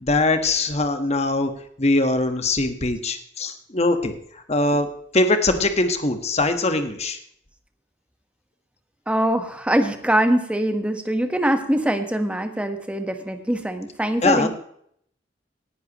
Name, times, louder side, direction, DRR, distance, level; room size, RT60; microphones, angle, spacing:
voice 1, 0.0-1.5 1.8-4.1 4.5-4.9 5.1-7.2 14.2-14.5, left 2 dB, 35° left, 7 dB, 1.4 m, -21 dB
voice 2, 9.1-14.5, right 1 dB, 5° right, 7 dB, 1.2 m, -23 dB
18.0 x 10.5 x 3.0 m, 0.66 s
head